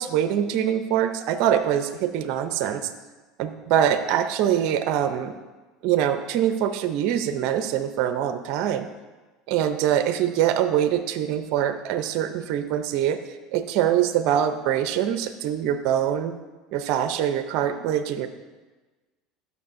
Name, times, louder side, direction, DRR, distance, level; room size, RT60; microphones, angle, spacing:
voice 1, 0.0-2.9 3.4-5.4 5.8-8.9 9.5-13.2 13.5-16.3 16.7-18.3, right 10 dB, 65° right, 9 dB, 0.5 m, -24 dB
12.0 x 6.3 x 2.6 m, 1.3 s
supercardioid pair, 100°, 0 cm